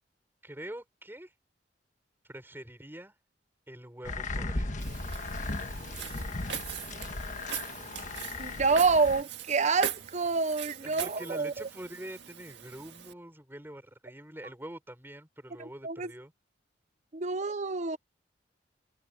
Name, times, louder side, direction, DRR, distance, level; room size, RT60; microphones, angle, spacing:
voice 1, 0.4-1.3 2.3-3.1 3.7-4.8 10.8-16.3, right 1 dB, 10° right, 5.7 m, -45 dB
sound 1, 4.0-9.2, left 2 dB, 45° left, 1.4 m, -36 dB
Walk footsteps, 4.8-13.1, right 8 dB, 70° right, 1.8 m, -41 dB
voice 2, 8.4-11.7 15.6-16.1 17.1-18.0, right 4 dB, 40° right, 0.8 m, -28 dB
head